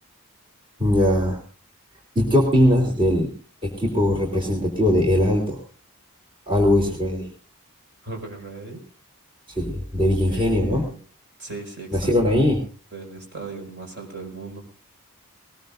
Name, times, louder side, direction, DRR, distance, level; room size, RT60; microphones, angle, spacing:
voice 1, 0.8-1.4 2.1-3.3 3.6-5.6 6.5-7.3 9.6-10.8 11.9-12.6, left 1 dB, 25° right, -1 dB, 3.3 m, -20 dB
voice 2, 8.0-8.8 10.3-11.0 11.4-12.4 12.9-14.6, right 3 dB, 50° right, 2 dB, 5.9 m, -37 dB
20.5 x 20.0 x 2.6 m, 0.36 s
head